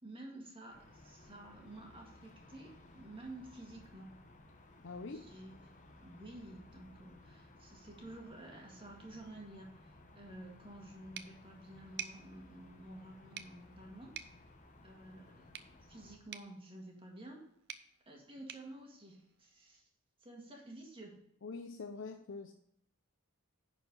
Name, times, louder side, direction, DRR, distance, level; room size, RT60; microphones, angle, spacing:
voice 1, 0.0-4.2 5.1-14.2 14.8-17.4 18.1-19.8 20.2-21.2, right 1 dB, 25° right, 0 dB, 1.8 m, -51 dB
sound 1, 0.7-16.2, left 2 dB, 35° left, 0.9 m, -59 dB
voice 2, 4.8-5.3 21.4-22.5, left 4 dB, 55° left, 6 dB, 0.5 m, -44 dB
sound 2, 11.1-19.8, right 9 dB, 50° right, 0.5 m, -52 dB
10.0 x 4.6 x 5.2 m, 0.75 s
head